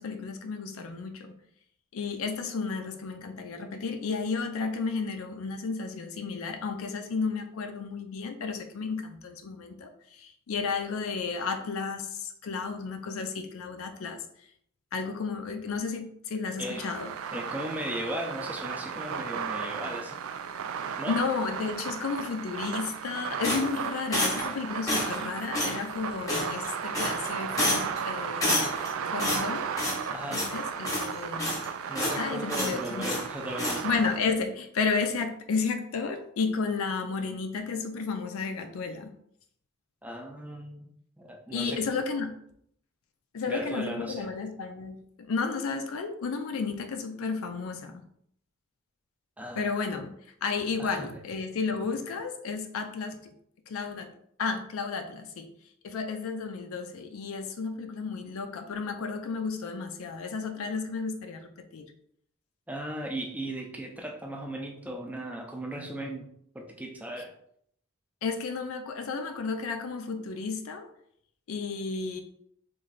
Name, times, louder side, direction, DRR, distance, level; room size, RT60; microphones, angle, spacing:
voice 1, 0.0-1.4 1.9-14.2 14.9-17.1 21.1-28.7 29.1-29.7 30.3-31.5 32.2-33.1 33.8-39.1 41.5-42.4 43.3-48.0 49.5-50.1 50.4-53.3 53.7-54.1 54.4-55.5 55.8-61.9 68.2-70.9 71.5-72.2, left 4 dB, 75° left, 0.4 m, -32 dB
sound 1, 16.6-34.2, right 7 dB, 75° right, 0.3 m, -35 dB
voice 2, 17.3-20.2 21.0-21.2 30.1-30.5 31.9-33.9 40.0-40.9 41.2-41.9 43.5-44.3 49.4-49.7 50.8-51.2 62.7-66.3 66.5-67.3, right 1 dB, 5° right, 0.5 m, -37 dB
sound 2, 23.4-24.5 24.9-25.2 25.5-25.8 26.3-26.7 26.9-27.3 27.6-28.0 28.4-28.9 29.2-30.1 30.3-30.6 30.9-31.7 32.0-32.2 32.5-33.3 33.6-33.8, left 1 dB, 15° left, 0.9 m, -29 dB
3.1 x 2.5 x 3.8 m
head